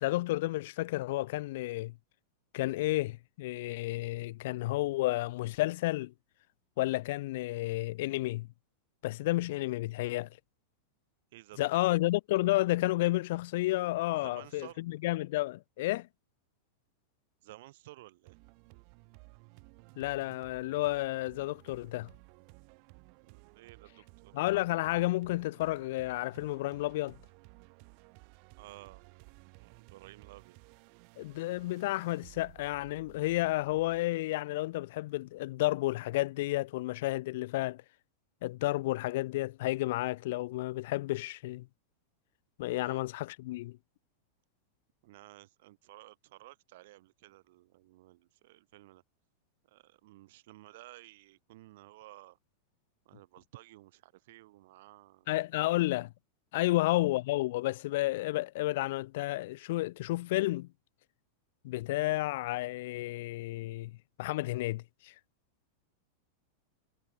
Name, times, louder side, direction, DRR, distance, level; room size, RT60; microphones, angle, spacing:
voice 1, 0.0-1.9 2.5-6.1 6.8-8.5 9.0-10.3 11.6-16.1 20.0-22.1 24.3-27.2 31.2-37.8 38.4-41.7 42.6-43.8 55.3-56.1 56.5-60.7 61.6-65.1, left 18 dB, 60° left, 0.4 m, -31 dB
voice 2, 11.3-11.9 14.1-14.8 17.4-18.3 23.2-24.4 28.6-29.3 29.5-30.6 42.8-43.0 45.0-49.0 49.7-52.4 53.0-55.3 56.6-56.8, right 17 dB, 60° right, 6.7 m, -54 dB
sound 1, 18.2-34.0, right 40 dB or more, 45° right, 5.6 m, -57 dB
supercardioid pair, 160°, 0 cm